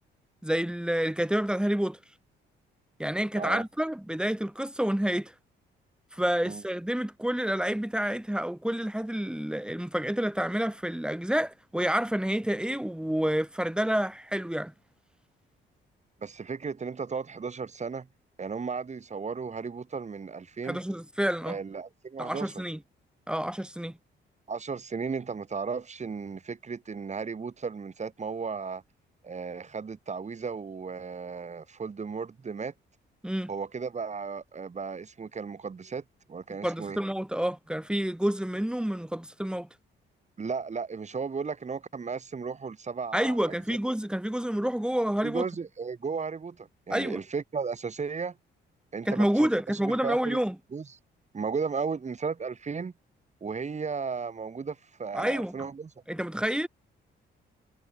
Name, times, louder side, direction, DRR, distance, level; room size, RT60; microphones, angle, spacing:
voice 1, 0.4-2.0 3.0-5.3 6.1-14.7 20.6-21.6 22.2-22.8 23.3-23.9 33.2-33.5 36.6-39.7 43.1-45.5 46.9-47.2 49.1-50.6 55.1-55.5 56.1-56.7, equal, 5° right, 3.8 m, -28 dB
voice 2, 16.2-18.1 18.4-20.8 21.4-22.6 24.5-28.8 29.2-32.7 33.5-37.0 40.4-43.8 45.2-48.4 48.9-50.4 50.7-50.9 51.3-52.9 53.4-55.9, right 5 dB, 35° right, 4.9 m, -35 dB
cardioid pair, 90°, 20 cm